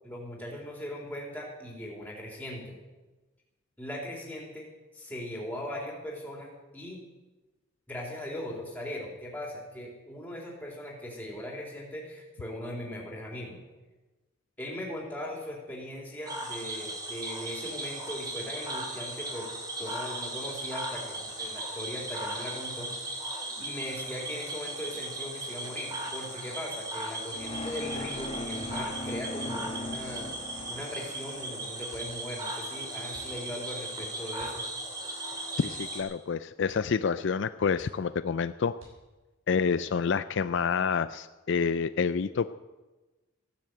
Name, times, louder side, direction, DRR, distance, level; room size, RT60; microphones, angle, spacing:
voice 1, 0.0-2.8 3.8-4.6 4.9-7.0 7.9-13.6 14.6-19.5 19.8-23.2 23.6-30.3 30.7-34.6, left 1 dB, 10° left, -1 dB, 3.6 m, -39 dB
Cricket / Frog, 16.3-36.0, right 1 dB, 20° right, 2.8 m, -37 dB
sound 1, 27.3-31.4, left 1 dB, 25° left, 2.0 m, -39 dB
sound 2, 30.5-31.0 31.8-32.5 33.1-33.4 34.3-34.7 35.0-35.1 35.5-36.3 36.6-37.0 37.3-37.4 37.7-38.3 38.7-39.3 40.0-40.6 41.0-41.4, equal, 85° right, 6.2 m, -54 dB
voice 2, 35.6-38.8 39.5-42.5, left 5 dB, 60° left, 13 dB, 0.4 m, -28 dB
15.0 x 10.0 x 8.0 m, 1.2 s
head